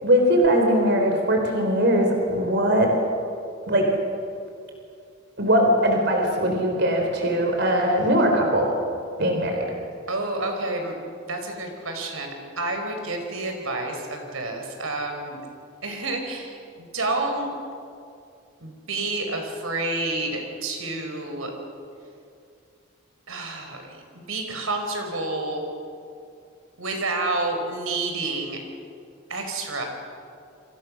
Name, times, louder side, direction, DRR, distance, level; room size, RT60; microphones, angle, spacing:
voice 1, 0.0-2.9 3.7-3.9 5.4-8.7 9.2-9.7, equal, 55° right, 2 dB, 4.1 m, -20 dB
voice 2, 10.1-10.9 11.3-15.4 15.8-17.5 18.6-21.5 23.3-24.0 24.3-25.6 26.8-28.6 29.3-29.8, right 2 dB, 90° right, 3 dB, 5.0 m, -29 dB
29.5 x 25.5 x 6.4 m, 2.4 s
head